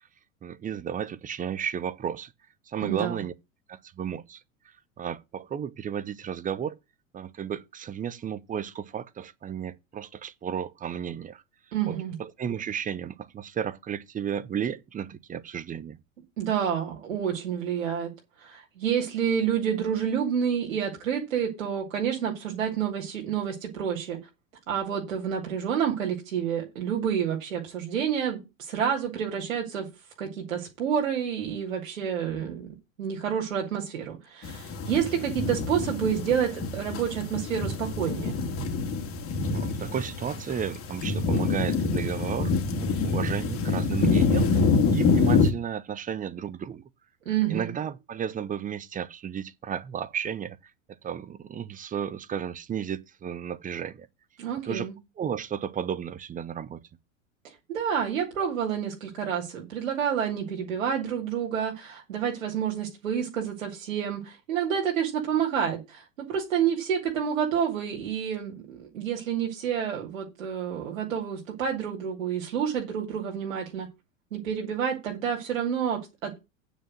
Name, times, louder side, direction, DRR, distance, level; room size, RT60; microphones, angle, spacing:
voice 1, 0.4-2.3 2.7-3.3 3.7-4.4 5.0-6.8 7.1-11.4 11.9-16.0 39.5-46.9 47.5-50.6 51.0-54.1 54.6-54.9 55.2-56.8, right 8 dB, 20° right, 0.8 m, -33 dB
voice 2, 2.8-3.2 11.7-12.2 16.4-18.1 18.4-24.2 24.7-29.9 30.2-32.7 33.0-38.3 47.3-47.7 54.4-54.9 57.7-73.9 74.3-76.3, right 8 dB, 75° right, 2.5 m, -29 dB
sound 1, 34.4-45.5, left 4 dB, 35° left, 2.4 m, -26 dB
9.0 x 4.9 x 7.5 m
hypercardioid pair, 90°, 40 cm